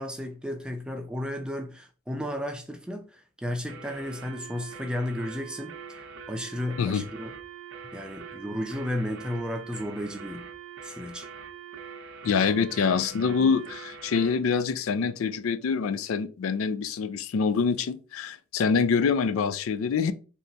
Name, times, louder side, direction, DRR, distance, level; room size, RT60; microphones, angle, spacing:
voice 1, 0.0-7.3 7.9-10.4 10.8-11.3, left 1 dB, 5° right, 0.4 m, -33 dB
sound 1, 3.7-14.4, right 6 dB, 70° right, 0.6 m, -43 dB
voice 2, 12.2-20.1, left 5 dB, 85° left, 0.4 m, -25 dB
3.3 x 2.8 x 4.0 m
head